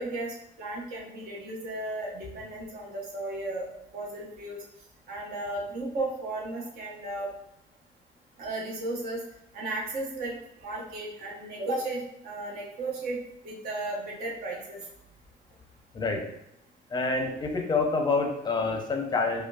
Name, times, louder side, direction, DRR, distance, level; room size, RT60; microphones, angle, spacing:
voice 1, 0.0-3.7 3.9-4.6 5.1-7.3 8.4-9.2 9.5-10.3 10.6-13.2 13.4-14.9, right 2 dB, 65° right, -3 dB, 1.0 m, -34 dB
voice 2, 16.9-19.4, left 3 dB, 25° left, 3 dB, 0.6 m, -27 dB
4.9 x 2.2 x 2.3 m, 0.82 s
cardioid pair, 110°, 17 cm